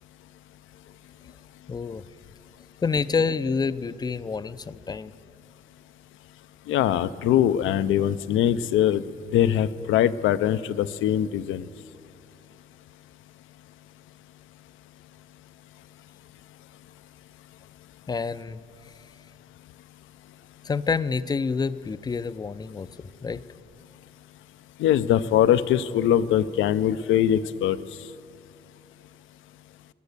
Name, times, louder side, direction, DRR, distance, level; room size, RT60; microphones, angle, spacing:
voice 1, 1.7-2.0 2.8-5.1 18.1-18.6 20.6-22.9 23.2-23.4, left 5 dB, 20° left, 16 dB, 0.4 m, -27 dB
voice 2, 6.7-9.0 9.3-11.7 24.8-27.8, left 11 dB, 80° left, 14 dB, 0.5 m, -22 dB
16.5 x 11.0 x 6.7 m, 2.5 s
cardioid pair, 90°, 20 cm